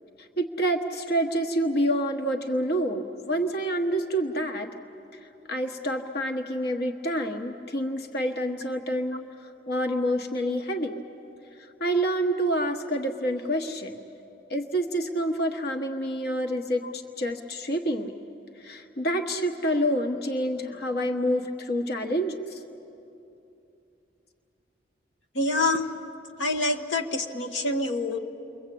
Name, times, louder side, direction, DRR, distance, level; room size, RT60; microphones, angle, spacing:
voice 1, 0.2-4.7 5.5-9.3 9.7-10.9 11.6-14.0 14.5-18.1 18.6-22.6, equal, 60° left, 5 dB, 1.3 m, -28 dB
voice 2, 25.3-25.9 26.4-28.2, left 2 dB, 90° left, 4 dB, 1.4 m, -26 dB
29.5 x 23.0 x 8.5 m, 2.8 s
head